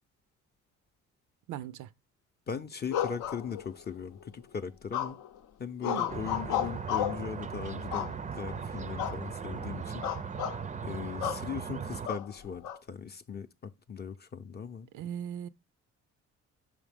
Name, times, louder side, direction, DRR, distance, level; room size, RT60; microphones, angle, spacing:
voice 1, 1.5-1.9 5.9-6.1 14.9-15.5, right 9 dB, 80° right, 0.5 m, -38 dB
voice 2, 2.5-5.2 5.6-10.1 10.8-14.9, left 6 dB, 35° left, 0.5 m, -39 dB
sound 1, 2.9-3.9 4.9-5.4 5.8-7.3 7.9-8.5 9.0-9.2 9.5-9.7 10.0-10.6 11.2-11.5 12.1-12.8, left 10 dB, 85° left, 0.6 m, -33 dB
sound 2, 6.1-12.1, right 6 dB, 25° right, 0.4 m, -38 dB
5.6 x 4.9 x 3.4 m
cardioid pair, 90°, 30 cm